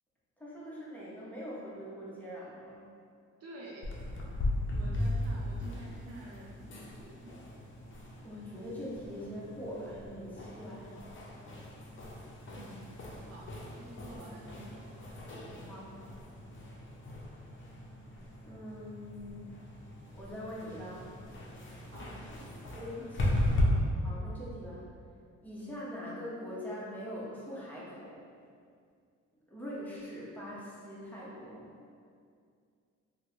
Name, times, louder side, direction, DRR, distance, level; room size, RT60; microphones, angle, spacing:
voice 1, 0.4-2.9 8.2-11.0 15.7-15.9 18.4-19.5 20.1-21.1 22.7-24.8 25.4-28.2 29.5-31.7, equal, 5° left, -8 dB, 0.8 m, -43 dB
voice 2, 3.4-3.9 4.7-7.4 12.5-14.9 21.9-22.2, right 1 dB, 55° right, -4 dB, 0.6 m, -49 dB
sound 1, 3.8-23.6, left 1 dB, 40° left, 0.6 m, -38 dB
3.4 x 2.1 x 3.0 m, 2.3 s
cardioid pair, 90°, 30 cm